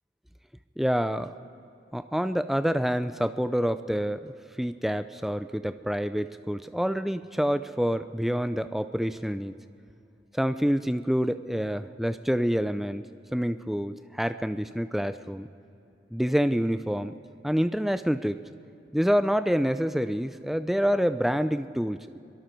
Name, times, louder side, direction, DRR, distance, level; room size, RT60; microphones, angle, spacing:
voice 1, 0.8-1.3 1.9-9.5 10.3-13.0 13.3-15.5 16.1-17.1 17.4-18.4 18.9-22.2, equal, ahead, 11 dB, 0.4 m, -27 dB
25.0 x 23.0 x 4.5 m, 2.6 s
head